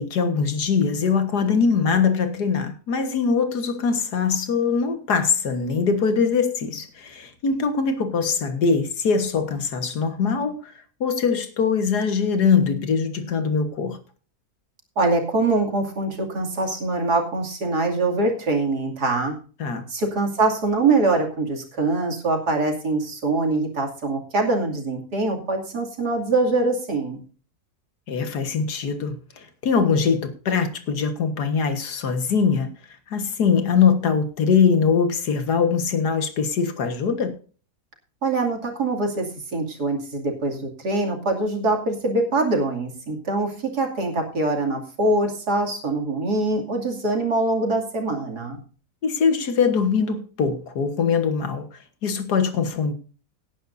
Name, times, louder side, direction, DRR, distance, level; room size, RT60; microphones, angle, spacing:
voice 1, 0.0-10.7 11.0-14.0 19.6-19.9 28.1-32.7 33.1-37.3 49.0-51.7 52.0-52.9, left 5 dB, 85° left, 8 dB, 2.0 m, -22 dB
voice 2, 15.0-19.3 19.9-27.2 38.2-48.6, right 2 dB, 85° right, 1 dB, 3.2 m, -23 dB
17.5 x 10.0 x 2.6 m, 0.39 s
omnidirectional pair, 1.7 m